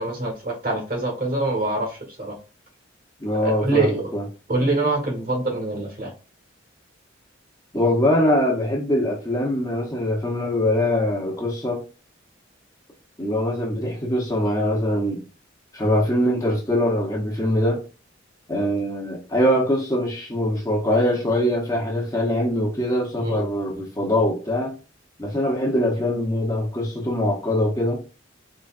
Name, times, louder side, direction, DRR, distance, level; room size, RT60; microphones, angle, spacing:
voice 1, 0.0-2.4 3.4-4.0 4.5-6.1 23.2-23.4, right 2 dB, 45° right, 1.4 m, -25 dB
voice 2, 3.2-4.2 7.7-11.8 13.2-15.2 15.7-17.8 18.5-24.7 25.2-28.0, left 1 dB, 15° left, 0.9 m, -23 dB
4.0 x 3.2 x 2.5 m
head